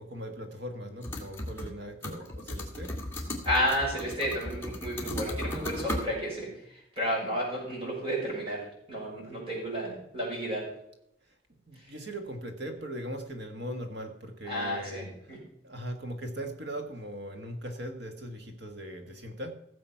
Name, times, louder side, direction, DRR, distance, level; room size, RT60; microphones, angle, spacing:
voice 1, 0.0-3.0 11.2-15.3 15.6-19.5, right 1 dB, 60° right, 1.8 m, -39 dB
sound 1, 1.0-1.8 2.0-6.0, left 1 dB, 15° left, 2.4 m, -36 dB
voice 2, 3.4-10.7 11.8-11.9 14.5-15.4, equal, 30° right, 6.1 m, -32 dB
16.5 x 7.4 x 5.8 m
head